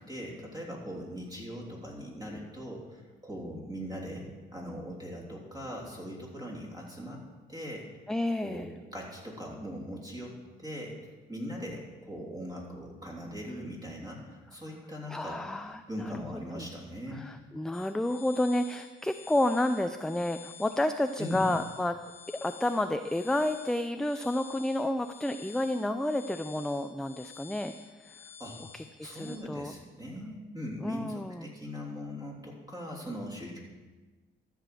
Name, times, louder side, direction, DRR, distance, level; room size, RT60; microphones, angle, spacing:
voice 1, 0.0-7.2 7.5-7.9 8.4-15.4 15.9-17.2 21.2-21.5 28.4-28.6 29.0-33.6, equal, 20° right, -2 dB, 3.2 m, -40 dB
voice 2, 8.1-8.7 15.1-15.8 16.5-16.7 17.1-22.0 22.4-27.7 28.0-28.2 28.7-29.7 30.8-31.5, left 1 dB, 5° left, 8 dB, 0.4 m, -30 dB
sound 1, 17.7-29.4, left 8 dB, 85° left, 1.4 m, -50 dB
13.0 x 5.0 x 7.7 m, 1.3 s
cardioid pair, 90°, 20 cm